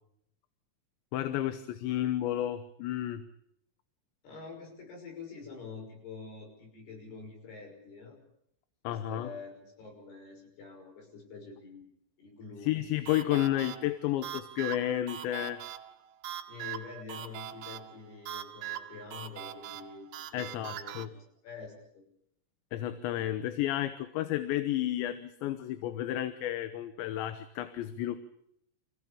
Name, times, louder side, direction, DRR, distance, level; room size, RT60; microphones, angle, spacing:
voice 1, 1.1-3.2 8.8-9.3 12.6-15.6 20.3-21.1 22.7-28.2, left 13 dB, 80° left, 10 dB, 3.3 m, -32 dB
voice 2, 4.2-8.2 8.9-11.9 12.2-12.9 16.5-22.0, left 5 dB, 60° left, 2 dB, 8.1 m, -47 dB
sound 1, 13.1-21.1, right 11 dB, 85° right, 3.5 m, -42 dB
28.0 x 16.5 x 8.6 m, 0.75 s
omnidirectional pair, 5.2 m